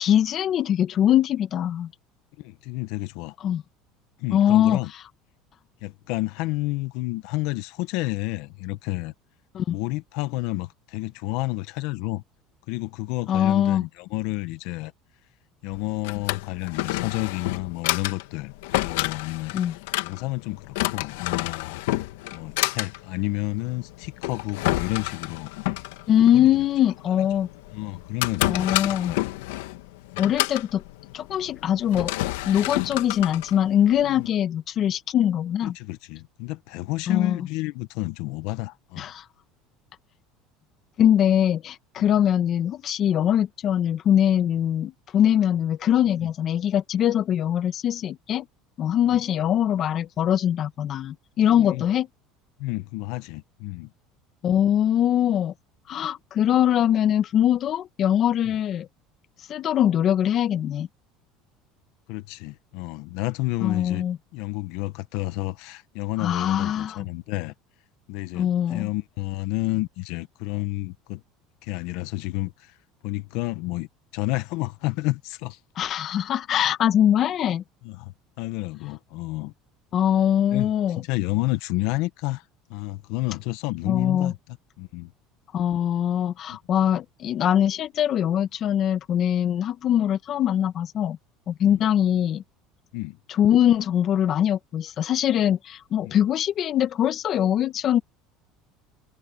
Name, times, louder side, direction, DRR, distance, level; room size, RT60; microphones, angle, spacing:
voice 1, 0.0-1.9 3.4-3.6 4.3-4.8 9.5-9.8 13.3-13.8 19.5-19.8 26.1-27.5 28.5-29.2 30.2-30.8 31.1-32.1 32.5-35.7 37.1-37.4 39.0-39.2 41.0-48.4 48.8-52.1 54.4-55.5 55.9-58.9 59.5-60.9 63.6-64.2 66.2-67.1 68.3-68.9 75.8-77.6 79.9-81.0 83.8-84.3 85.5-91.2 91.5-92.4 93.3-98.0, left 10 dB, 45° left, 1.4 m, -22 dB
voice 2, 2.4-3.3 4.2-4.9 5.8-9.1 9.7-12.2 12.7-14.9 15.6-19.6 20.0-22.0 22.3-25.5 26.3-26.5 27.2-27.3 27.7-29.3 30.1-30.3 34.0-34.3 35.6-39.1 51.5-51.8 52.6-53.9 62.1-64.0 64.3-67.5 68.1-71.2 71.6-72.7 73.0-73.9 74.1-75.6 77.8-79.5 80.5-82.4 82.7-84.4 84.8-85.1 86.5-86.6 91.6-91.9 92.9-93.2 96.0-96.2, left 20 dB, 70° left, 1.3 m, -30 dB
Drawer open or close, 15.7-34.3, left 18 dB, 90° left, 1.8 m, -30 dB
supercardioid pair, 115°, 0 cm